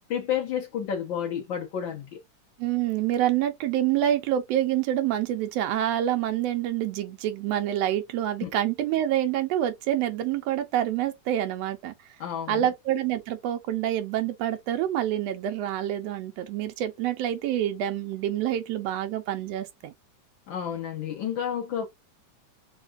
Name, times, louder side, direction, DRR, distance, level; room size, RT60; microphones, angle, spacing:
voice 1, 0.1-2.2 8.4-8.5 12.2-12.7 20.5-21.9, left 9 dB, 80° left, 1.0 m, -30 dB
voice 2, 2.6-11.9 12.5-19.9, right 11 dB, 85° right, 1.5 m, -27 dB
4.9 x 2.2 x 2.4 m
omnidirectional pair, 3.6 m